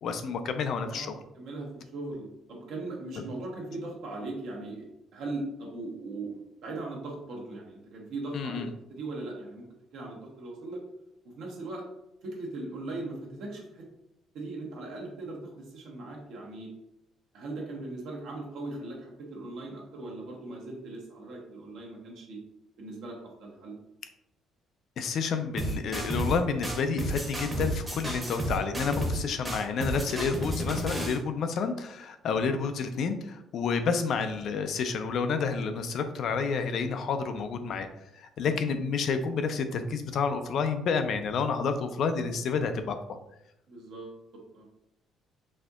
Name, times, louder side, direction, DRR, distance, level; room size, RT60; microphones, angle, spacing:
voice 1, 0.0-1.2 3.2-3.3 8.3-8.7 25.0-37.9 38.1-43.2, left 5 dB, 55° left, 8 dB, 0.3 m, -29 dB
voice 2, 0.8-4.9 5.1-8.6 8.9-9.7 9.9-10.8 11.4-11.8 12.2-13.8 14.3-16.7 17.3-22.4 22.8-23.7 28.1-28.3 43.7-44.2 44.5-44.6, right 2 dB, 70° right, -2 dB, 0.9 m, -39 dB
sound 1, 25.6-26.4 26.6-29.2 29.4-31.2, right 1 dB, 10° right, 0.8 m, -31 dB
4.2 x 2.7 x 2.3 m, 0.84 s
cardioid pair, 145°, 0 cm